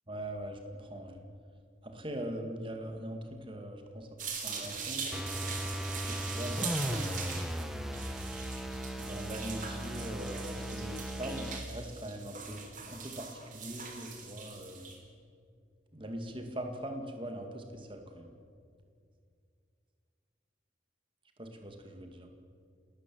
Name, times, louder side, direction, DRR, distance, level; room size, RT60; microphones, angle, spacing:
voice 1, 0.1-1.2 1.8-4.1 4.4-5.1 6.0-7.3 9.0-14.9 15.9-18.4 21.4-22.3, right 1 dB, 25° right, 4 dB, 2.2 m, -41 dB
sound 1, 4.2-15.0, right 5 dB, 40° right, 3.6 m, -42 dB
sound 2, 5.1-11.7, equal, ahead, 1.0 m, -37 dB
29.5 x 13.5 x 7.7 m, 2.3 s
head